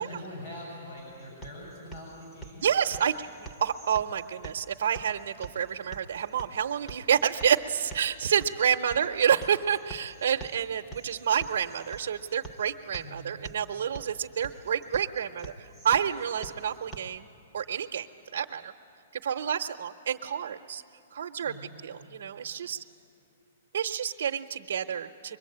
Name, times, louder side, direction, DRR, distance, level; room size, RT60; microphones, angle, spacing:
voice 1, 0.0-2.7 13.0-13.4 21.4-21.8, left 1 dB, 55° left, -2 dB, 6.8 m, -43 dB
sound 1, 1.0-17.0, right 2 dB, 5° left, 0.8 m, -47 dB
voice 2, 2.6-17.3 17.5-18.1 18.3-18.7 19.1-20.8 21.1-21.6 21.8-22.8 23.7-25.4, right 8 dB, 65° right, 4 dB, 0.7 m, -29 dB
24.5 x 21.5 x 8.6 m, 2.7 s
hypercardioid pair, 175°, 0 cm